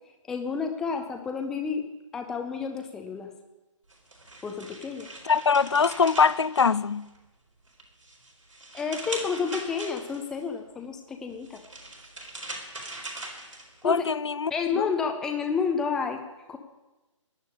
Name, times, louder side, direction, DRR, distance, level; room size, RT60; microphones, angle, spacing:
voice 1, 0.3-1.8 2.1-3.3 4.4-5.1 8.7-11.6 13.8-14.0 14.5-16.2 16.5-16.6, left 6 dB, 5° left, 0.5 m, -30 dB
sound 1, 3.9-7.3 7.7-10.4 11.3-14.0, right 2 dB, 75° right, 4.3 m, -41 dB
voice 2, 5.3-7.1 13.8-14.5 14.8-14.9, left 5 dB, 55° left, 0.5 m, -23 dB
11.5 x 8.1 x 9.8 m
figure-of-eight pair, 145°, 17 cm